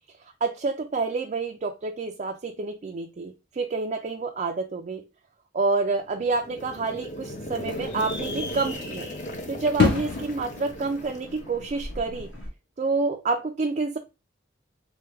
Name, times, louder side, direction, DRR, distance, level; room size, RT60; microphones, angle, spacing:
voice 1, 0.4-5.1 5.5-9.1 9.5-12.3 12.8-14.0, right 3 dB, 40° right, 0.3 m, -28 dB
sound 1, 6.0-12.0, equal, 40° left, 0.7 m, -37 dB
sound 2, 6.5-12.5, left 3 dB, 65° left, 1.4 m, -31 dB
4.5 x 2.2 x 3.4 m
head